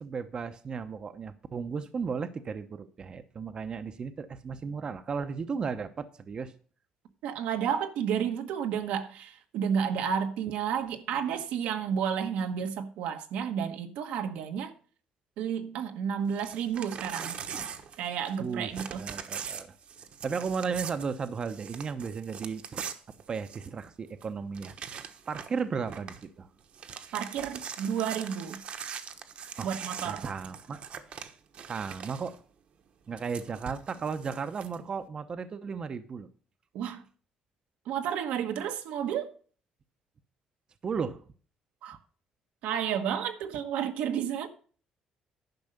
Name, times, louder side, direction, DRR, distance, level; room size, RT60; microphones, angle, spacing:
voice 1, 0.0-6.5 18.4-19.7 20.2-22.8 23.3-26.5 29.6-29.7 30.1-30.8 31.7-32.4 33.1-36.3 40.8-41.2, right 5 dB, 40° right, 0.8 m, -35 dB
voice 2, 7.2-14.7 15.4-17.4 18.0-19.1 27.1-28.6 29.6-30.2 36.7-37.0 37.8-39.3 41.8-42.0 42.6-44.5, right 8 dB, 85° right, 1.3 m, -31 dB
Crumpling crinkling / Tearing, 16.3-18.5 18.7-23.8 24.2-24.3 24.5-25.6 25.9-26.2 26.6-32.4 33.2-34.8, right 7 dB, 55° right, 1.1 m, -41 dB
10.5 x 5.5 x 6.6 m
cardioid pair, 105°, 2 cm